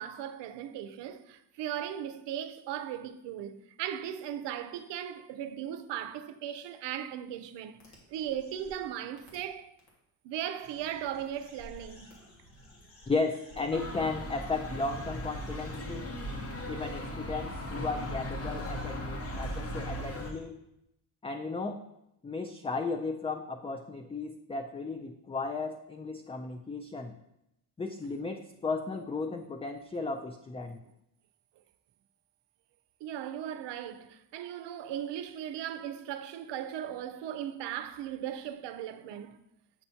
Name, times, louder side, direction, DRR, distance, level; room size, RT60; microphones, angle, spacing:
voice 1, 0.0-7.8 8.1-9.7 10.2-12.1 33.0-39.4, right 10 dB, 75° right, 0.6 m, -37 dB
sound 1, 7.8-8.8 9.2-9.4 9.8-9.9 10.5-16.0 16.5-16.6 17.1-17.2 17.9-18.2 18.5-20.4, left 1 dB, 85° left, 1.9 m, -55 dB
voice 2, 13.1-16.1 16.7-20.6 21.2-21.8 22.2-27.1 27.8-30.8, left 3 dB, 15° left, 0.4 m, -35 dB
sound 2, 13.7-20.3, equal, 35° left, 1.1 m, -37 dB
8.3 x 4.3 x 2.8 m
supercardioid pair, 70°, 42 cm